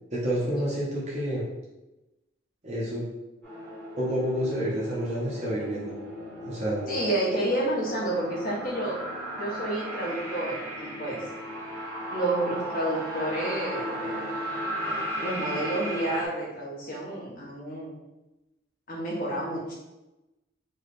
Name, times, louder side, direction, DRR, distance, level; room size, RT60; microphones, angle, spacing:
voice 1, 0.1-1.4 2.6-3.1 4.0-5.9 6.4-6.9, equal, 35° right, -7 dB, 0.7 m, -29 dB
sound 1, 3.4-16.3, equal, 10° left, 1.0 m, -36 dB
voice 2, 6.9-9.0 9.4-11.2 12.1-14.3 14.9-17.9 18.9-19.7, right 1 dB, 45° left, -5 dB, 1.1 m, -30 dB
3.2 x 2.3 x 4.0 m, 1.0 s
head